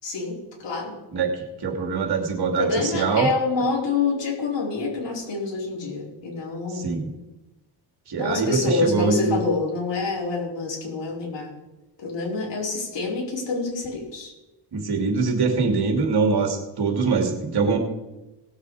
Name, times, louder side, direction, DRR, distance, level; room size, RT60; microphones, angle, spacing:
voice 1, 0.0-1.0 2.6-6.9 8.2-11.5 12.0-14.3, left 3 dB, 70° left, -3 dB, 4.5 m, -27 dB
voice 2, 1.1-3.3 6.8-7.0 8.1-9.4 14.7-17.8, right 4 dB, 60° right, 3 dB, 2.7 m, -23 dB
18.5 x 7.4 x 4.9 m, 1.0 s
cardioid pair, 100°, 45 cm